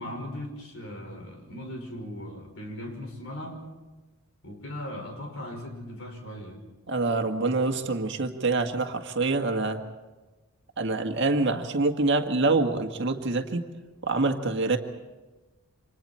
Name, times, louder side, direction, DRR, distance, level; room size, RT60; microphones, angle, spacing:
voice 1, 0.0-3.6 4.4-6.6 7.6-7.8, left 1 dB, 65° left, 3 dB, 5.6 m, -38 dB
voice 2, 6.9-9.8 10.8-13.7 14.0-14.8, right 3 dB, 55° right, 4 dB, 1.9 m, -26 dB
29.0 x 26.5 x 4.5 m, 1.2 s
head